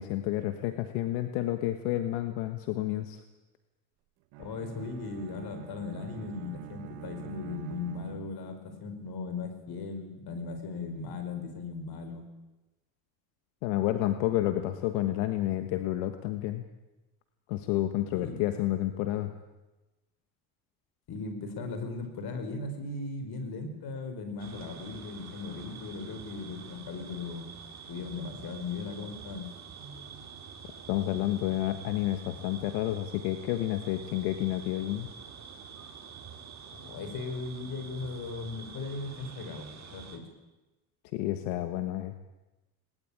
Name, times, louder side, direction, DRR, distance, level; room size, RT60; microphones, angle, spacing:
voice 1, 0.0-3.2 13.6-16.6 17.5-19.3 30.9-35.1 41.1-42.3, left 14 dB, 85° left, 8 dB, 1.5 m, -30 dB
Bowed string instrument, 4.3-8.7, right 15 dB, 80° right, 1.6 m, -46 dB
voice 2, 4.4-12.2 18.1-18.4 21.1-27.5 27.9-29.5 36.7-40.2, left 3 dB, 55° left, 7 dB, 5.6 m, -38 dB
sound 1, 24.4-40.2, right 6 dB, 35° right, 3.8 m, -47 dB
21.5 x 19.5 x 8.9 m, 1.1 s
supercardioid pair, 100°, 44 cm